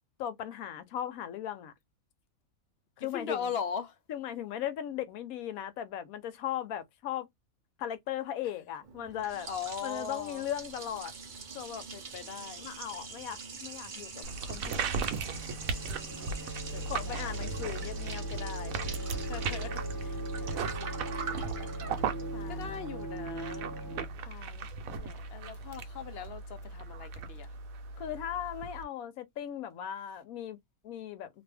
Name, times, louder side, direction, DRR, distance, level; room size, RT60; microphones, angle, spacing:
voice 1, 0.2-1.7 3.0-3.5 4.1-7.3 7.8-9.5 9.8-11.1 11.5-11.8 12.6-15.0 16.8-18.8 22.3-22.7 24.3-24.7 28.0-30.6 30.8-31.3, left 10 dB, 85° left, 1.1 m, -38 dB
voice 2, 3.0-3.9 9.4-10.5 11.9-12.7 15.9-17.3 19.0-21.7 22.0-23.7 24.9-27.5, left 6 dB, 60° left, 0.7 m, -41 dB
Liquid, 8.8-24.0, right 5 dB, 45° right, 0.7 m, -45 dB
sound 1, 14.2-28.8, right 4 dB, 75° right, 1.0 m, -37 dB
sound 2, 14.5-24.0, right 1 dB, 20° left, 0.5 m, -43 dB
2.6 x 2.4 x 3.3 m
omnidirectional pair, 1.5 m